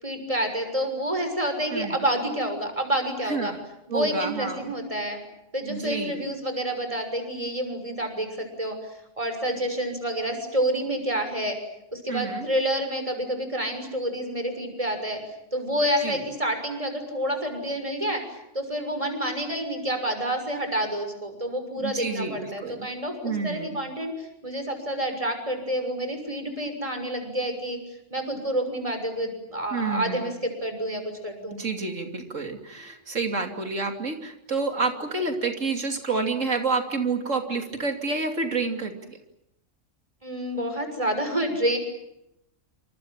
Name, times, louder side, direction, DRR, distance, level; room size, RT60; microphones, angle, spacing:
voice 1, 0.0-3.5 3.9-5.2 5.5-8.8 9.2-11.6 11.9-15.2 15.5-18.2 18.5-27.8 28.1-31.6 40.2-41.8, equal, 25° right, 7 dB, 6.6 m, -28 dB
voice 2, 3.2-3.6 3.9-4.7 5.7-6.2 12.1-12.4 16.0-16.2 21.8-22.9 23.2-23.8 29.7-30.2 31.5-39.2, right 4 dB, 90° right, 4 dB, 3.3 m, -29 dB
29.0 x 26.5 x 7.4 m, 0.84 s
omnidirectional pair, 1.3 m